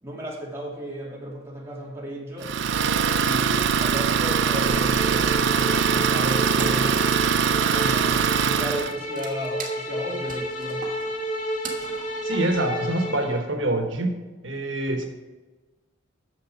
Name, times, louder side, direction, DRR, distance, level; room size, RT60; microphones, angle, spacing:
voice 1, 0.0-2.5 3.2-7.1 7.7-10.9, equal, 15° right, -5 dB, 2.9 m, -34 dB
Idling, 2.4-8.9, right 6 dB, 65° right, 0.5 m, -22 dB
sound 1, 4.6-13.4, equal, 40° left, 2.1 m, -32 dB
Wood, 6.6-13.3, right 5 dB, 45° right, 1.4 m, -42 dB
voice 2, 12.2-14.2 14.4-15.1, right 1 dB, 85° right, 4 dB, 1.2 m, -25 dB
9.7 x 7.1 x 5.1 m, 1.3 s
head